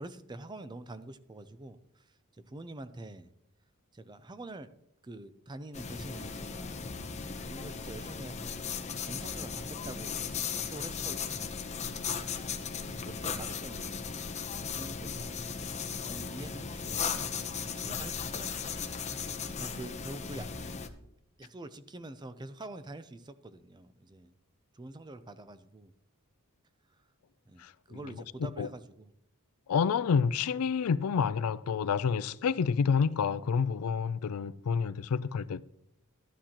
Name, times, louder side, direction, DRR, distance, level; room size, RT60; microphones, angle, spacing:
voice 1, 0.0-3.3 3.9-4.7 5.0-6.8 7.5-11.6 12.8-14.1 14.5-17.3 17.6-20.7 21.4-24.3 24.7-25.9 27.5-29.1, right 2 dB, 20° right, 0.5 m, -46 dB
sound 1, 5.7-20.9, left 6 dB, 30° left, 0.7 m, -37 dB
voice 2, 29.7-35.6, left 6 dB, 85° left, 0.4 m, -28 dB
12.5 x 10.0 x 2.9 m
head